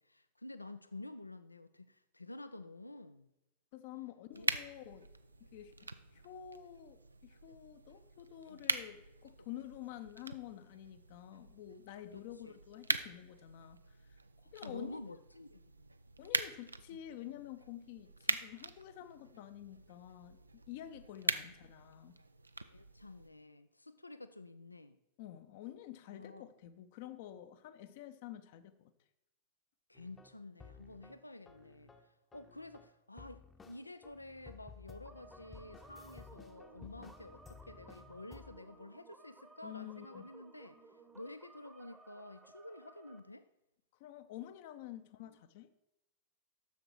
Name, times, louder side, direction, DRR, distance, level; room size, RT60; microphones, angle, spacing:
voice 1, 0.0-3.3 3.9-4.1 4.4-4.5 8.5-8.6 9.4-9.5 12.1-12.6 14.6-16.0 21.4-21.5 22.6-25.0 26.1-26.5 29.9-31.9 32.3-40.8 41.1-43.5 45.2-45.4, left 2 dB, 85° left, 12 dB, 0.4 m, -50 dB
voice 2, 3.7-5.1 5.4-13.8 14.5-15.0 16.2-20.4 20.7-22.2 25.2-28.9 37.0-37.1 39.6-40.3 44.0-45.7, left 12 dB, 50° left, 11 dB, 0.6 m, -49 dB
sound 1, 4.3-23.3, right 3 dB, 80° right, 0.4 m, -42 dB
sound 2, 29.9-31.2 31.5-32.9 33.2-38.6, left 5 dB, 15° left, 0.8 m, -56 dB
sound 3, 35.1-43.2, right 3 dB, 15° right, 0.9 m, -59 dB
10.0 x 6.9 x 4.5 m, 0.87 s
figure-of-eight pair, 90°, 0 cm